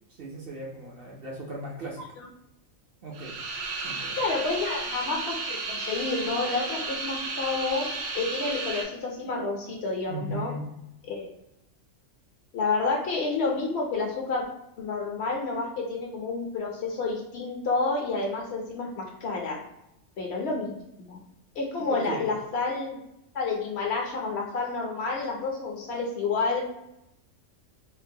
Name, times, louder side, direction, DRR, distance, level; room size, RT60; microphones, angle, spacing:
voice 1, 0.1-2.0 3.0-3.4 3.8-4.2 10.1-10.7 21.8-22.4, right 2 dB, 55° right, -3 dB, 0.7 m, -37 dB
sound 1, 3.1-8.8, right 3 dB, 80° right, 1.1 m, -33 dB
voice 2, 4.2-7.9 8.1-10.5 11.1-11.3 12.5-14.4 14.8-19.6 20.2-20.7 21.0-21.2 21.5-23.0 23.3-26.6, left 3 dB, 60° left, 0 dB, 0.8 m, -29 dB
3.8 x 2.0 x 2.6 m, 0.82 s
omnidirectional pair, 1.4 m